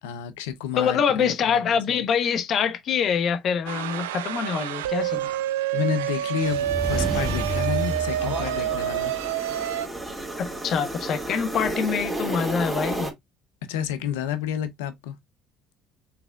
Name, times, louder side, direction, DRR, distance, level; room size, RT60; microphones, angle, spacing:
voice 1, 0.0-2.0 5.7-9.1 13.7-15.2, left 9 dB, 85° left, 0.6 m, -30 dB
voice 2, 0.8-5.3 10.4-13.1, left 7 dB, 55° left, 0.8 m, -25 dB
sound 1, 3.7-9.9, right 13 dB, 85° right, 0.4 m, -28 dB
sound 2, 6.4-13.1, right 2 dB, 10° right, 2.2 m, -33 dB
sound 3, 6.5-9.5, right 1 dB, 30° right, 1.0 m, -31 dB
5.9 x 3.5 x 2.3 m
hypercardioid pair, 70°, 0 cm